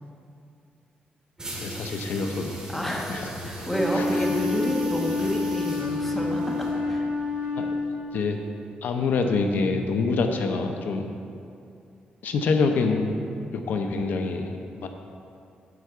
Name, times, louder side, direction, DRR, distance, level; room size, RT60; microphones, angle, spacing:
sound 1, 1.4-7.0, right 1 dB, 25° right, 1.9 m, -39 dB
voice 1, 1.6-3.2 3.6-3.7 3.9-4.1 7.6-7.7 8.1-8.4 8.8-11.1 12.2-13.1 13.4-14.9, left 4 dB, 75° left, 5 dB, 0.6 m, -26 dB
voice 2, 2.7-7.0, equal, 10° left, -2 dB, 1.1 m, -29 dB
Wind instrument woodwind instrument, 3.7-8.2, left 3 dB, 75° right, 1.4 m, -28 dB
9.6 x 4.5 x 6.9 m, 2.5 s
wide cardioid pair, 160°, 3 cm